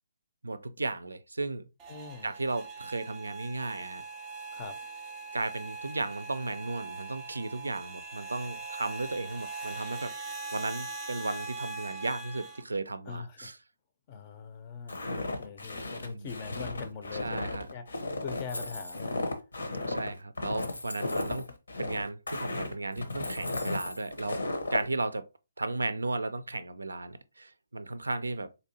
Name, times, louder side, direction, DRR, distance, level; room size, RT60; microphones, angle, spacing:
voice 1, 0.4-1.7 2.2-4.0 5.3-10.1 10.5-13.5 16.1-16.3 17.2-17.7 19.9-21.5 21.8-25.3 25.6-28.5, right 2 dB, 75° right, 0.4 m, -35 dB
sound 1, 1.8-12.6, right 3 dB, 20° right, 0.5 m, -41 dB
voice 2, 1.9-2.3 4.5-4.8 13.1-13.6 14.1-19.3, left 6 dB, 30° left, 0.5 m, -42 dB
Walk footsteps, 14.9-24.8, left 2 dB, 70° left, 0.8 m, -35 dB
sound 2, 18.3-19.3 19.9-20.0 20.5-21.5 22.4-22.5 22.9-24.1, left 1 dB, 85° left, 0.4 m, -42 dB
4.1 x 2.6 x 2.7 m
figure-of-eight pair, 140°, 0 cm